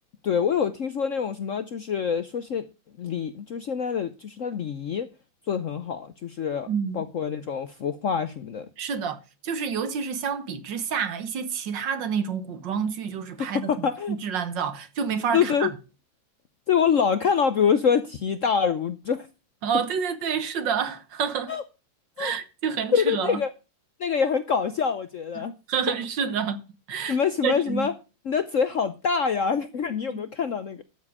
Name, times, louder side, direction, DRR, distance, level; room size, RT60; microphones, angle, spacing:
voice 1, 0.2-2.7 3.0-5.1 5.5-6.7 6.9-8.7 13.4-14.2 15.3-15.7 16.7-19.3 21.5-21.6 22.2-22.3 22.9-23.5 24.0-25.5 27.1-27.9 28.2-30.8, left 6 dB, 60° left, 0.8 m, -25 dB
voice 2, 6.7-7.0 8.8-15.7 19.6-21.5 22.2-23.4 25.4-25.5 25.7-26.6 26.9-27.9 30.1-30.2, right 7 dB, 70° right, 1.8 m, -28 dB
12.5 x 7.4 x 4.8 m
omnidirectional pair, 2.1 m